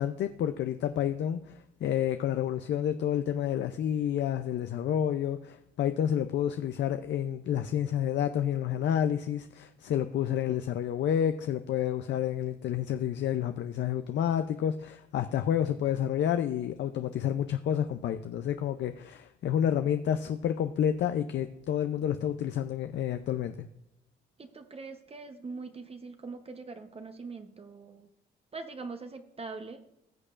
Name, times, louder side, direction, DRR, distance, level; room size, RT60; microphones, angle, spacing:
voice 1, 0.0-23.7, left 9 dB, 65° left, 9 dB, 0.5 m, -29 dB
voice 2, 24.4-28.1 28.5-29.8, right 4 dB, 30° right, 7 dB, 0.8 m, -42 dB
16.5 x 6.6 x 2.5 m, 0.85 s
cardioid pair, 90°, 20 cm